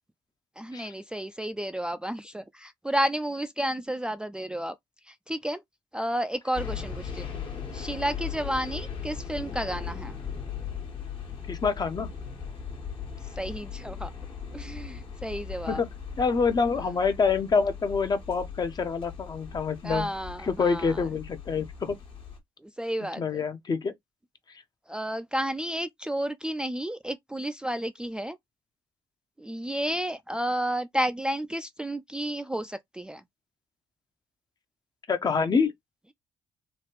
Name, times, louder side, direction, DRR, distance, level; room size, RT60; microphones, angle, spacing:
voice 1, 0.6-4.8 5.0-5.6 5.9-7.3 7.7-10.2 13.3-14.1 14.5-15.8 16.8-16.9 19.8-21.0 22.6-23.4 24.9-28.4 29.4-33.2, right 1 dB, 10° right, 0.3 m, -31 dB
sound 1, 6.5-22.4, left 7 dB, 55° left, 1.3 m, -38 dB
voice 2, 11.5-12.1 15.7-15.9 16.2-20.1 20.5-22.0 23.2-23.9 35.1-35.7, left 5 dB, 40° left, 0.7 m, -26 dB
3.0 x 2.4 x 3.0 m
hypercardioid pair, 45°, 10 cm